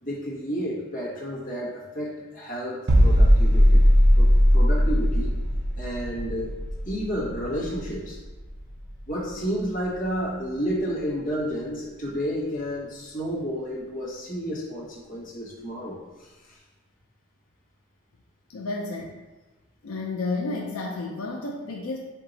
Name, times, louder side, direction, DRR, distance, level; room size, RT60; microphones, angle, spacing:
voice 1, 0.0-3.8 4.2-5.3 5.8-6.6 6.8-8.2 9.1-16.3, equal, 40° left, -7 dB, 1.3 m, -31 dB
sound 1, 2.9-8.6 8.8-9.1, equal, 55° right, 0.8 m, -19 dB
voice 2, 18.5-19.1 19.8-22.0, left 3 dB, 85° left, 0 dB, 0.5 m, -31 dB
4.5 x 2.7 x 3.9 m, 1.2 s
head